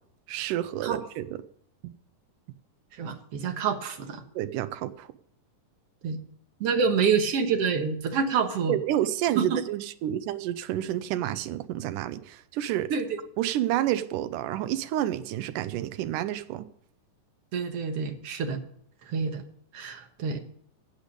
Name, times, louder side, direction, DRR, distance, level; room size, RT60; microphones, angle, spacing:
voice 1, 0.3-1.3 1.8-1.9 4.4-5.1 8.7-12.9 13.4-16.7, right 12 dB, 90° right, 2.3 m, -29 dB
voice 2, 3.0-4.2 6.0-6.2 6.6-8.8 9.4-9.6 12.9-13.1 17.5-18.6 19.1-19.4 19.7-20.4, right 6 dB, 55° right, 2.0 m, -27 dB
13.5 x 8.2 x 5.2 m
omnidirectional pair, 3.6 m